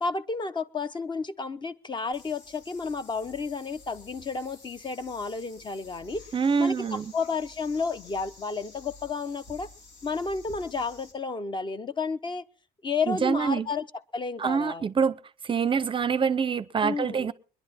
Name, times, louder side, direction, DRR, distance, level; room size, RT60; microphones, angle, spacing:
voice 1, 0.0-6.3 6.6-9.7 10.0-12.5 12.8-13.9 14.1-14.8 16.8-17.3, left 4 dB, 25° left, 0.7 m, -31 dB
sound 1, 2.1-11.1, left 3 dB, 85° left, 3.2 m, -51 dB
voice 2, 6.3-7.1 13.1-13.7 14.4-15.2 15.4-17.3, right 6 dB, 30° right, 0.6 m, -25 dB
21.5 x 11.0 x 4.2 m
cardioid pair, 110°, 17 cm